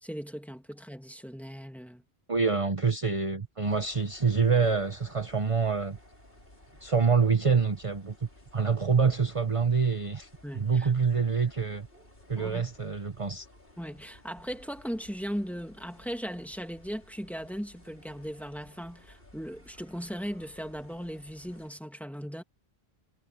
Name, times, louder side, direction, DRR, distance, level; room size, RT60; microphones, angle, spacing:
voice 1, 0.0-2.0 10.4-10.9 12.4-12.6 13.8-22.4, equal, ahead, 2.4 m, -38 dB
voice 2, 2.3-6.0 6.8-10.3 10.5-11.9 12.3-13.5, right 5 dB, 35° right, 1.1 m, -26 dB
sound 1, 3.6-21.7, left 1 dB, 60° left, 5.3 m, -56 dB
omnidirectional pair, 1.1 m